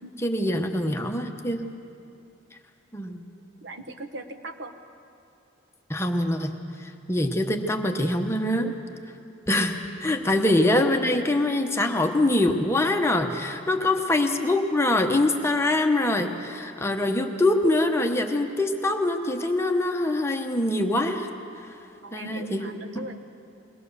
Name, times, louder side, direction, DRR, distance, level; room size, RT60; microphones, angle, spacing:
voice 1, 0.2-1.7 2.9-3.2 5.9-8.7 9.5-21.3 22.1-23.1, left 1 dB, 15° left, 4 dB, 1.0 m, -24 dB
voice 2, 3.6-4.7 10.4-10.5 13.7-13.9 22.0-23.2, right 1 dB, 60° right, 6 dB, 1.2 m, -39 dB
22.0 x 18.5 x 6.8 m, 2.6 s
head